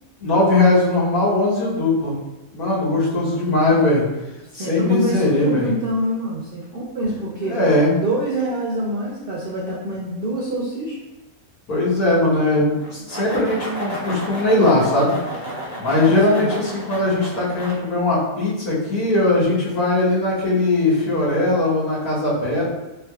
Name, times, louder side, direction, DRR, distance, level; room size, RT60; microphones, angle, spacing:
voice 1, 0.2-2.1 2.5-4.0 4.5-5.6 7.4-7.9 11.7-15.1 15.8-22.6, left 2 dB, 85° left, -8 dB, 1.7 m, -19 dB
voice 2, 3.1-3.6 4.4-7.6 7.9-11.0 16.3-16.5, right 1 dB, 70° right, -4 dB, 0.5 m, -26 dB
sound 1, 12.8-17.7, right 1 dB, 35° left, 0.8 m, -32 dB
3.4 x 3.2 x 2.3 m, 1.0 s
omnidirectional pair, 1.5 m